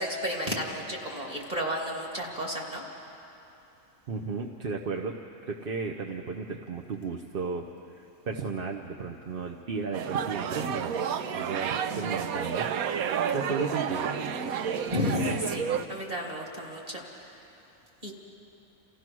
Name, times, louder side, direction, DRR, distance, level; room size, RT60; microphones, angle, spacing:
voice 1, 0.0-2.8 14.9-17.4 18.0-18.1, equal, 30° right, -2 dB, 2.8 m, -32 dB
voice 2, 4.1-5.2 5.4-11.0 11.3-14.3, right 4 dB, 45° right, 2 dB, 0.9 m, -34 dB
sound 1, 9.9-15.8, right 7 dB, 80° right, 1.2 m, -30 dB
29.0 x 15.5 x 6.2 m, 2.9 s
omnidirectional pair, 1.5 m